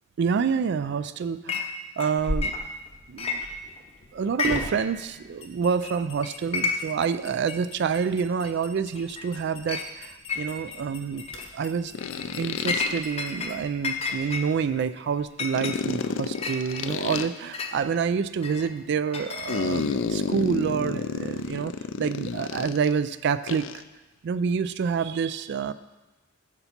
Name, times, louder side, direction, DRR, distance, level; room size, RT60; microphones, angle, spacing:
voice 1, 0.2-2.5 3.1-3.4 4.1-11.3 11.5-12.0 12.4-21.7 22.0-23.8 24.2-25.7, right 6 dB, 55° right, 14 dB, 0.3 m, -27 dB
Chink clink, 1.5-1.7 2.0-2.9 3.2-3.9 4.3-4.9 5.1-5.2 5.8-6.0 6.2-7.0 7.5-7.6 8.4-8.5 9.0-9.3 9.7-9.9 10.3-10.8 11.2-11.5 12.0-13.5 13.8-17.8 18.4-19.9, left 4 dB, 30° left, 0.7 m, -32 dB
sound 1, 2.2-14.4, left 1 dB, 80° left, 1.4 m, -40 dB
sound 2, 9.4-9.5 11.9-13.0 15.5-17.3 19.5-22.9 23.5-23.8, left 5 dB, 65° left, 0.4 m, -30 dB
9.8 x 6.8 x 4.4 m, 1.1 s
head